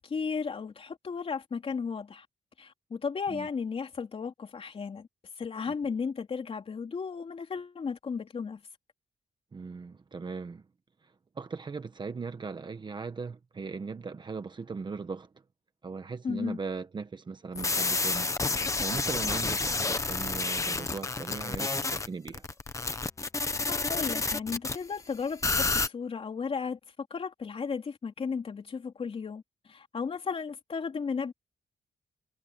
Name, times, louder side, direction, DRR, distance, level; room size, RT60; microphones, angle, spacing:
voice 1, 0.0-2.3 2.6-5.1 5.4-8.6 16.2-16.6 23.6-26.8 27.1-29.4 29.7-31.3, left 5 dB, 35° left, 3.7 m, -34 dB
voice 2, 9.5-10.6 11.0-15.3 15.8-18.3 18.8-22.4, right 4 dB, 30° right, 1.2 m, -39 dB
sound 1, 17.6-24.8 25.4-25.9, left 3 dB, 20° left, 1.1 m, -29 dB
wide cardioid pair, 170°, 16 cm